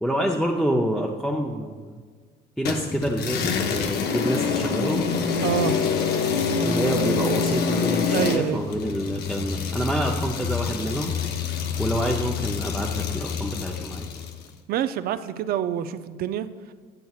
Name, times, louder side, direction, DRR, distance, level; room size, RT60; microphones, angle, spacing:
voice 1, 0.0-1.9 2.6-5.0 5.7-6.3 6.6-11.1 11.8-14.1, equal, ahead, -1 dB, 0.5 m, -27 dB
sound 1, 2.6-14.4, left 5 dB, 70° left, 0.7 m, -26 dB
voice 2, 5.4-5.8 8.1-8.6 14.7-16.7, right 10 dB, 65° right, 12 dB, 0.4 m, -27 dB
10.5 x 6.8 x 2.4 m, 1.5 s
cardioid pair, 110°, 17 cm